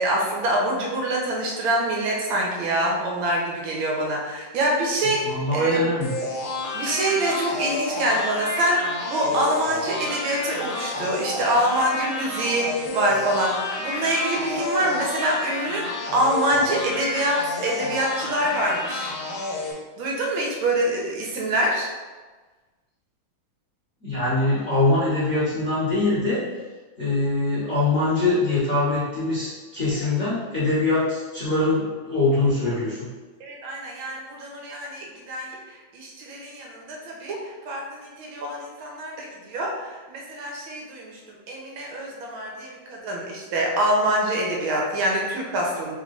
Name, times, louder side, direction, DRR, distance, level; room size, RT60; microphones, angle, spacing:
voice 1, 0.0-5.8 6.7-19.1 20.0-21.9 33.4-46.0, right 1 dB, 70° right, -2 dB, 1.6 m, -25 dB
voice 2, 5.2-6.1 24.0-26.4 27.0-33.1, left 2 dB, 40° left, -12 dB, 1.4 m, -23 dB
sound 1, 6.0-19.7, left 2 dB, 80° left, 1.6 m, -30 dB
3.9 x 3.1 x 3.8 m, 1.3 s
omnidirectional pair, 2.3 m